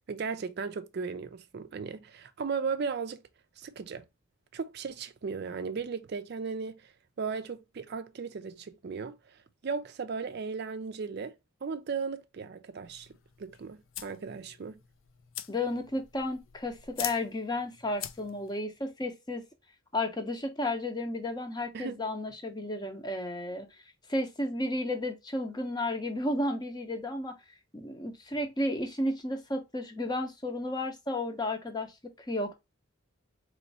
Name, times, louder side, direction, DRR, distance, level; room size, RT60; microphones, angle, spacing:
voice 1, 0.1-3.2 3.6-4.0 4.5-11.3 11.6-13.1 13.4-14.8 21.7-22.0, right 5 dB, 45° right, 0.4 m, -36 dB
sound 1, 12.8-18.6, left 12 dB, 65° left, 0.4 m, -44 dB
voice 2, 15.5-19.4 19.9-23.7 24.1-27.3 27.7-31.9 32.3-32.5, left 1 dB, 20° left, 0.7 m, -33 dB
4.2 x 3.1 x 2.7 m
head